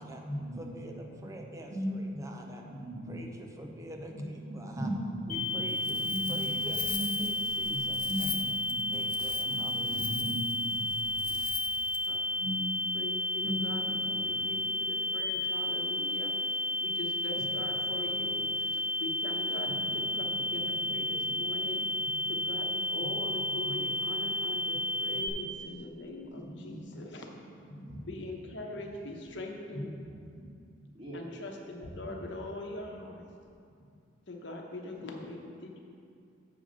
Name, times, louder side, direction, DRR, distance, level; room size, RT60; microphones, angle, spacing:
voice 1, 0.0-0.7 1.1-3.1 3.6-3.7 4.1-5.4 5.8-7.3 7.7-8.9 9.4-10.9 12.4-12.7 13.4-14.7 15.0-15.4 16.1-16.2 17.3-17.5 18.1-18.2 18.6-18.7 19.6-22.4 23.0-23.6 24.5-24.6 25.1-25.8 26.3-27.1 27.6-28.0 28.7-28.8 29.2-29.3 29.7-29.9 30.4-30.5 30.9-31.2 31.8-32.0 33.8-33.9 35.0-35.3, equal, 35° right, -8 dB, 1.3 m, -40 dB
voice 2, 0.6-2.6 3.1-4.9 5.3-6.8 7.2-8.3 8.9-10.1, right 1 dB, 15° right, 2 dB, 0.5 m, -46 dB
sound 1, 5.3-25.3, left 1 dB, 5° left, 1.3 m, -32 dB
Wind, 5.7-12.2, left 10 dB, 45° left, 0.5 m, -42 dB
voice 3, 12.9-13.8 14.1-21.9 22.3-27.3 28.0-29.9 31.1-33.2 34.3-35.8, left 2 dB, 65° left, 1 dB, 1.0 m, -42 dB
6.9 x 5.1 x 6.6 m, 2.5 s
head